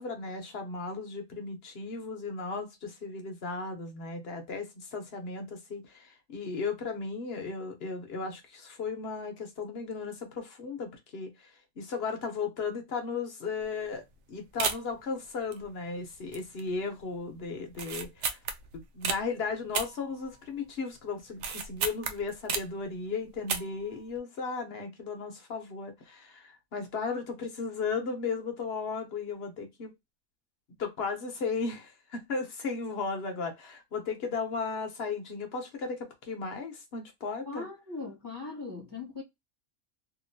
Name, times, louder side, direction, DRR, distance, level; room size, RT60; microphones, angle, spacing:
voice 1, 0.0-18.4 18.7-29.9 30.8-37.7, left 4 dB, 60° left, 1.1 m, -35 dB
sound 1, 13.6-13.9 14.1-14.2 14.6-15.0 15.5-16.0 16.3-16.7 17.0-17.1 17.7-19.2 19.7-20.7 21.0-22.8 23.3-23.9 24.2-24.3, right 6 dB, 85° right, 0.9 m, -33 dB
voice 2, 37.5-39.2, left 3 dB, 20° right, 1.2 m, -39 dB
2.9 x 2.6 x 2.6 m
omnidirectional pair, 1.2 m